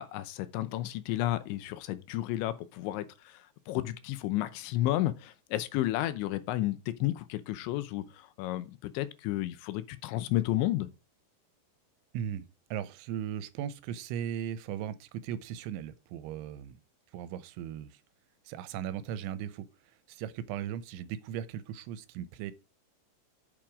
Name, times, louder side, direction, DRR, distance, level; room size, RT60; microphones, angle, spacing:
voice 1, 0.0-10.9, left 15 dB, 80° left, 3.1 m, -32 dB
voice 2, 12.1-16.8 17.1-18.0 18.5-22.5, right 10 dB, 85° right, 3.1 m, -38 dB
8.9 x 7.6 x 4.9 m
omnidirectional pair, 5.4 m